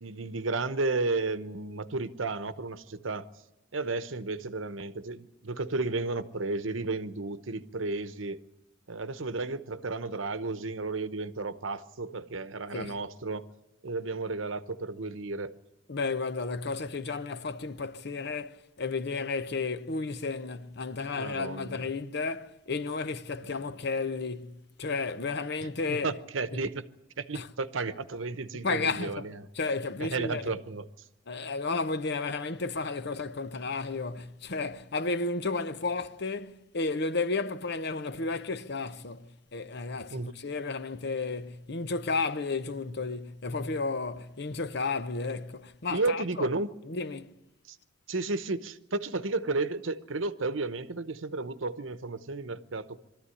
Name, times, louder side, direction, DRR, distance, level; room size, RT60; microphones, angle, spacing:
voice 1, 0.0-3.3 3.7-8.4 8.9-13.4 13.8-15.5 21.1-21.9 25.9-26.9 27.2-29.5 30.0-30.9 40.1-40.3 45.9-46.7 47.7-47.8 48.1-53.0, right 3 dB, 80° right, 0.9 m, -33 dB
voice 2, 15.9-26.1 26.5-26.6 27.3-27.5 28.6-29.3 29.5-30.6 31.3-46.5 46.9-47.4, left 3 dB, 60° left, 0.8 m, -33 dB
23.0 x 13.5 x 9.9 m
head